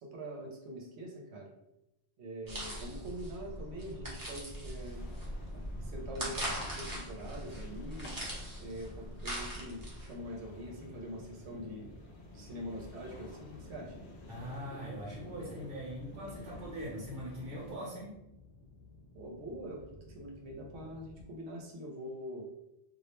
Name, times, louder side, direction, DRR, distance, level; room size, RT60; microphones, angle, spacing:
voice 1, 0.0-1.5 2.2-5.0 5.5-8.2 8.5-12.0 12.3-13.9 19.1-22.4, equal, 85° right, 0 dB, 0.9 m, -44 dB
sound 1, 2.4-21.3, left 2 dB, 55° left, 0.4 m, -54 dB
sound 2, 2.5-10.1, equal, 25° right, 0.6 m, -41 dB
sound 3, 4.8-17.8, left 1 dB, 80° left, 0.9 m, -52 dB
voice 2, 14.3-18.2, equal, 60° right, -5 dB, 0.9 m, -42 dB
2.4 x 2.0 x 2.9 m, 0.88 s
omnidirectional pair, 1.1 m